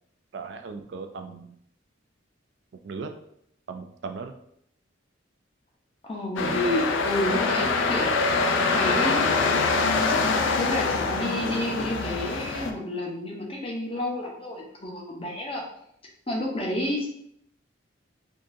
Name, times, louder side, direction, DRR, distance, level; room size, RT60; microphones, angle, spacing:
voice 1, 0.3-1.6 2.8-3.2 3.7-4.3, right 4 dB, 60° right, 6 dB, 0.3 m, -37 dB
voice 2, 6.0-9.2 10.1-10.2 10.5-15.6 16.3-17.1, left 1 dB, 30° left, -1 dB, 0.7 m, -30 dB
sound 1, 6.4-12.7, left 4 dB, 75° left, 0.4 m, -24 dB
3.6 x 2.7 x 2.6 m, 0.70 s
head